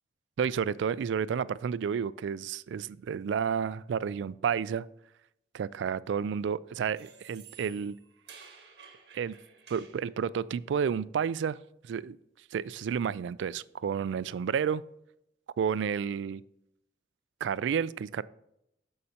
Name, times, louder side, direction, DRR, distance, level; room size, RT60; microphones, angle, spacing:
voice 1, 0.4-4.9 5.5-7.9 9.1-9.4 9.7-11.6 11.8-12.2 12.5-14.8 15.6-16.4 17.4-18.2, right 7 dB, 85° right, 19 dB, 0.3 m, -31 dB
sound 1, 6.9-10.0, right 6 dB, 70° right, 1.4 m, -53 dB
13.0 x 5.5 x 2.8 m, 0.81 s
head